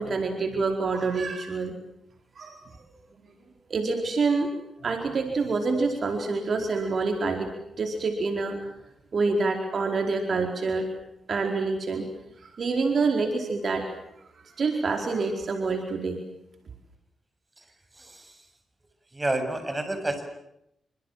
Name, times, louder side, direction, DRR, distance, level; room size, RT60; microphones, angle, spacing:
voice 1, 0.0-1.7 2.4-2.6 3.7-4.5 4.8-7.5 7.8-8.7 9.1-10.9 11.3-12.1 12.6-13.9 14.6-16.2, right 4 dB, 60° right, 5 dB, 4.6 m, -26 dB
voice 2, 19.1-20.3, right 2 dB, 25° right, 8 dB, 7.6 m, -28 dB
28.0 x 26.0 x 7.6 m, 0.78 s
cardioid pair, 55°, 0 cm